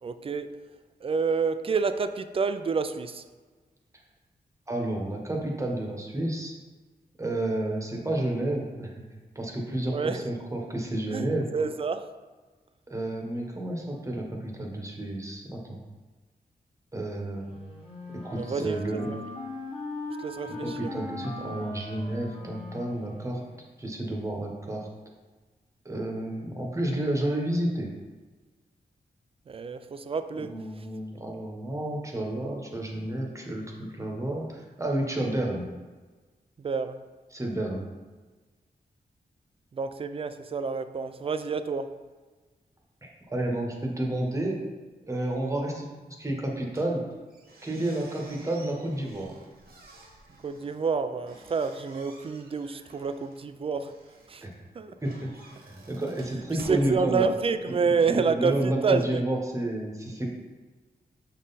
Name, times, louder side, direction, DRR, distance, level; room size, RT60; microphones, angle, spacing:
voice 1, 0.0-0.5 1.0-3.2 9.9-10.2 11.1-11.3 11.5-12.1 18.4-19.2 20.2-20.9 29.5-30.5 36.6-37.0 39.7-41.9 50.4-53.9 54.3-54.4 54.8-54.9 56.6-59.2, right 5 dB, 35° right, 10 dB, 0.3 m, -28 dB
voice 2, 4.7-6.5 7.2-9.0 9.3-11.5 12.9-15.8 16.9-17.5 18.2-19.1 20.4-23.4 23.8-24.9 25.8-27.9 30.4-35.6 37.3-37.8 43.0-44.6 45.1-47.0 47.6-49.3 54.4-54.5 55.0-55.3 55.7-57.3 57.8-60.3, right 1 dB, 20° right, 0 dB, 1.0 m, -31 dB
Wind instrument woodwind instrument, 17.4-23.6, left 2 dB, 35° left, 1.6 m, -39 dB
sound 1, 46.7-57.8, right 2 dB, 75° right, 1.2 m, -51 dB
6.2 x 3.8 x 4.0 m, 1.3 s
wide cardioid pair, 110°, 16 cm